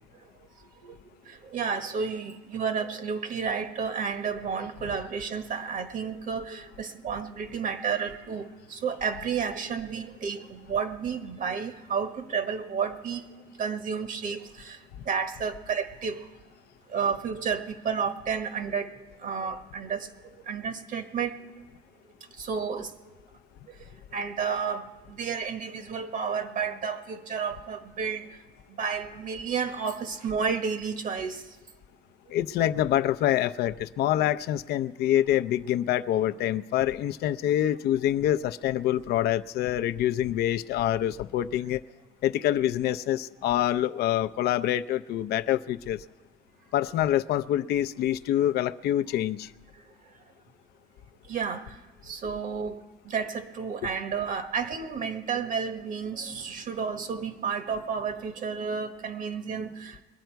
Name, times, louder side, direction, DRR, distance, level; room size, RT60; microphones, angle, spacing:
voice 1, 1.3-13.3 13.6-14.8 15.0-16.3 16.9-18.9 19.2-20.1 20.5-21.4 22.4-22.9 24.1-28.3 28.7-31.4 51.3-51.8 52.0-52.8 53.0-60.0, right 6 dB, 50° right, 8 dB, 1.3 m, -31 dB
voice 2, 32.3-41.8 42.2-46.0 46.7-49.5, left 12 dB, 70° left, 11 dB, 0.5 m, -26 dB
22.0 x 9.3 x 4.6 m, 1.3 s
cardioid pair, 110°, 17 cm